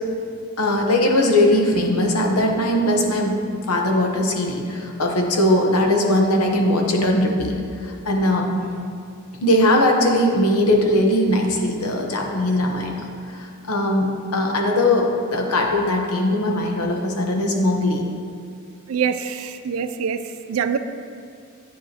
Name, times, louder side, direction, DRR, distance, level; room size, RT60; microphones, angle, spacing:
voice 1, 0.6-8.6 9.4-18.1, left 1 dB, 90° left, 2 dB, 1.0 m, -20 dB
voice 2, 18.9-20.8, right 7 dB, 70° right, 10 dB, 0.4 m, -25 dB
8.9 x 7.5 x 2.9 m, 2.3 s
head